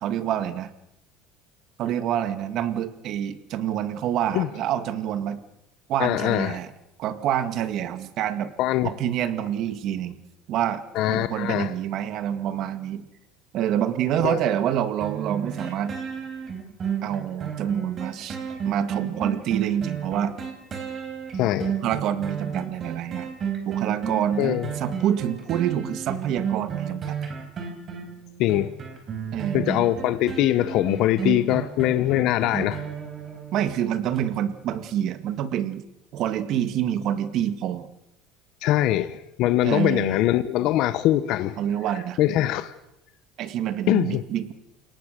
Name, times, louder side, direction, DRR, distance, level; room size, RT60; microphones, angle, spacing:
voice 1, 0.0-0.7 1.8-5.4 5.9-6.7 7.0-8.5 8.8-10.2 10.5-13.0 13.5-15.9 17.0-18.4 18.6-20.3 21.8-23.3 23.7-27.2 29.3-29.7 33.5-35.8 36.1-37.9 39.6-40.2 41.6-42.2 43.4-44.5, right 10 dB, 50° right, 2.0 m, -27 dB
voice 2, 6.0-6.6 8.6-8.9 10.9-11.7 14.2-14.4 21.4-21.7 24.4-24.7 28.4-28.7 29.5-32.8 38.6-41.6 42.2-42.7 43.9-44.2, left 14 dB, 55° left, 1.1 m, -22 dB
sound 1, 15.0-33.7 34.2-34.3, right 7 dB, 30° right, 4.6 m, -32 dB
29.0 x 18.0 x 6.8 m
cardioid pair, 145°, 0 cm